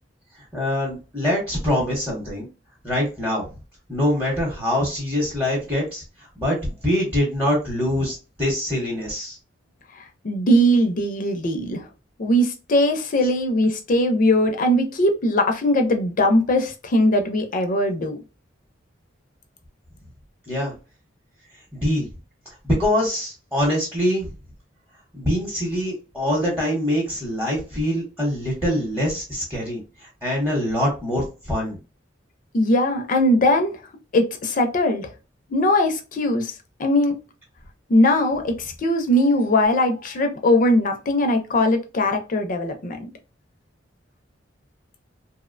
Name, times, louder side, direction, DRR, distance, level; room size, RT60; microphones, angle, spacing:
voice 1, 0.5-2.5 2.8-3.5 3.9-9.4 20.5-20.7 21.7-22.1 22.6-24.3 25.1-31.8, left 1 dB, 10° right, 0.8 m, -24 dB
voice 2, 10.2-11.8 12.2-18.2 32.5-33.7 34.1-35.1 35.5-36.5 36.8-37.1 37.9-43.0, left 1 dB, 45° left, 0.4 m, -20 dB
2.7 x 2.0 x 2.4 m
head